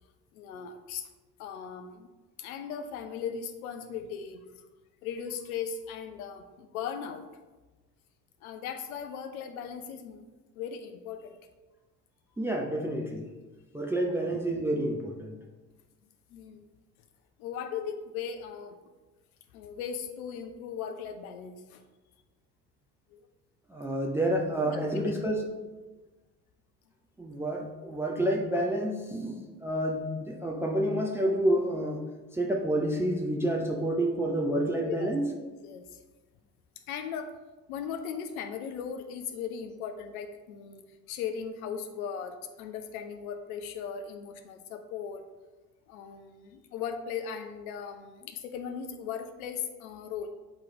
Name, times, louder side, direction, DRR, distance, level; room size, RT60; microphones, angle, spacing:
voice 1, 0.3-1.1 1.4-2.1 2.4-4.5 5.0-7.2 8.4-10.2 10.6-11.4 16.3-16.7 17.4-18.8 19.5-21.8 23.1-23.2 24.6-25.1 34.9-35.1 35.4-36.0 36.9-37.4 37.7-40.8 41.1-45.2 45.9-50.3, left 7 dB, 60° left, 7 dB, 0.7 m, -38 dB
voice 2, 12.4-13.3 13.7-15.4 23.7-25.5 27.2-32.0 32.3-35.3, right 1 dB, 5° right, 1 dB, 0.3 m, -29 dB
8.7 x 3.0 x 3.6 m, 1.2 s
figure-of-eight pair, 60°, 48 cm